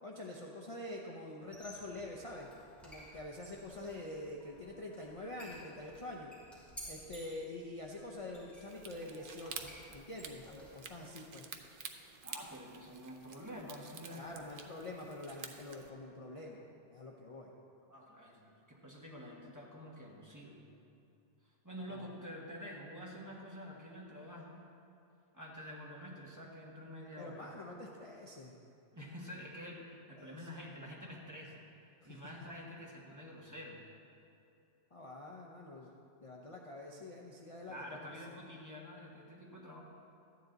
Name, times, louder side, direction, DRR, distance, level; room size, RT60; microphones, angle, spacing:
voice 1, 0.0-2.5 2.8-6.3 6.9-11.5 14.1-17.5 21.9-22.1 27.2-28.6 30.1-30.5 32.0-32.2 34.9-35.9 36.2-38.1, left 1 dB, 35° left, -1 dB, 0.7 m, -46 dB
Squeak, 1.4-11.0, equal, ahead, 2.7 m, -55 dB
sound 1, 8.7-15.9, right 6 dB, 55° right, 0.8 m, -50 dB
voice 2, 12.2-14.4 17.9-20.6 21.6-24.7 25.3-27.4 28.9-31.6 32.0-33.8 37.7-39.8, equal, 15° right, -3 dB, 1.4 m, -48 dB
13.0 x 9.6 x 3.9 m, 2.7 s
omnidirectional pair, 1.2 m